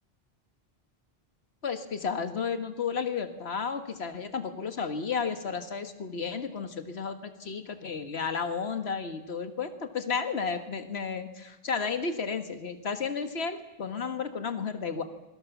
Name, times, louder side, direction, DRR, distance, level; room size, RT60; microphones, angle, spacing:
voice 1, 1.6-15.0, left 5 dB, 85° left, 8 dB, 1.7 m, -32 dB
26.0 x 23.0 x 7.1 m, 0.99 s
omnidirectional pair, 1.0 m